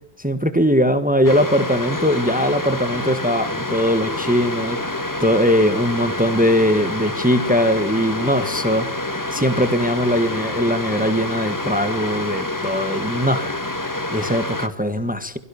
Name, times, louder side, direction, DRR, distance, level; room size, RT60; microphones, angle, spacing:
voice 1, 0.2-15.4, equal, 10° right, 10 dB, 1.7 m, -20 dB
sound 1, 1.2-14.7, left 2 dB, 20° left, 1.4 m, -27 dB
25.0 x 17.0 x 7.2 m, 0.68 s
omnidirectional pair, 1.1 m